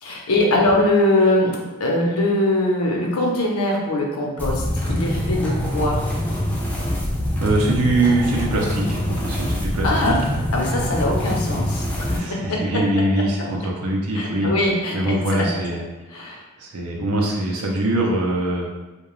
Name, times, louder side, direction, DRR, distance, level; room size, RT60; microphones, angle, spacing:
voice 1, 0.0-6.0 9.8-10.2 10.5-12.8 14.1-15.5 16.1-16.4, left 1 dB, 90° left, -1 dB, 0.6 m, -22 dB
sound 1, 4.4-12.2, left 1 dB, 10° left, 0.3 m, -24 dB
voice 2, 7.4-10.2 12.1-14.5 14.9-15.8 16.1-16.3 16.6-18.7, right 1 dB, 90° right, -1 dB, 0.6 m, -23 dB
2.3 x 2.2 x 3.0 m, 1.1 s
head